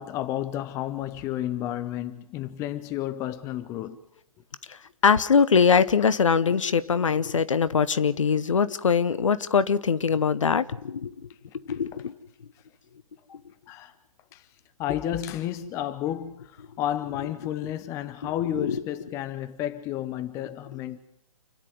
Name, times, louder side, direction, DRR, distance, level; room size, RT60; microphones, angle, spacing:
voice 1, 0.0-4.0 13.7-13.9 14.3-14.4 14.8-21.0, left 12 dB, 15° left, 0.7 m, -31 dB
voice 2, 4.7-11.1 11.7-12.1 13.3-13.4 18.2-18.8, left 6 dB, 60° left, 1.0 m, -23 dB
28.5 x 10.0 x 9.3 m
figure-of-eight pair, 130°, 18 cm